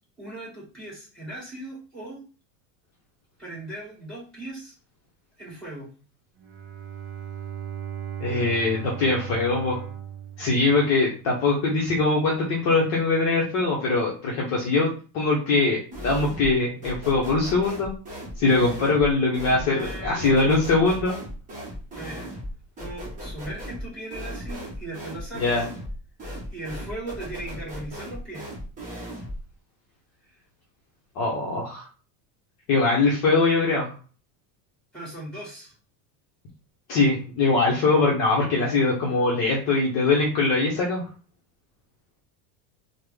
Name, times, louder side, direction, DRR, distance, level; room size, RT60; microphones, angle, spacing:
voice 1, 0.2-2.2 3.4-4.7 5.4-5.9 19.6-20.6 22.0-22.3 22.8-25.6 26.5-28.5 34.9-35.7, right 1 dB, ahead, -5 dB, 1.8 m, -38 dB
Bowed string instrument, 6.4-11.4, right 9 dB, 45° right, 0.7 m, -37 dB
voice 2, 8.2-9.8 10.4-17.9 18.4-21.1 25.4-25.6 31.2-31.8 32.7-33.9 36.9-41.0, left 3 dB, 40° left, -3 dB, 0.7 m, -22 dB
sound 1, 15.9-16.6 16.8-29.4, equal, 20° right, 0.9 m, -37 dB
3.4 x 2.1 x 3.2 m, 0.37 s
cardioid pair, 165°, 41 cm